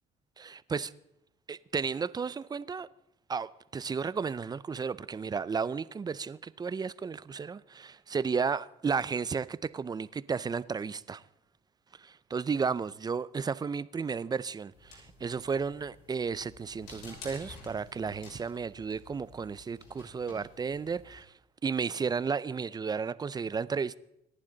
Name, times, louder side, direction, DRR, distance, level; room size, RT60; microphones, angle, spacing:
voice 1, 0.4-0.9 1.5-2.9 3.3-11.2 12.0-21.3 21.6-24.0, right 5 dB, 25° right, 0.5 m, -33 dB
sound 1, 14.7-21.2, left 3 dB, 80° left, 6.5 m, -52 dB
26.5 x 11.0 x 3.9 m
cardioid pair, 110°, 17 cm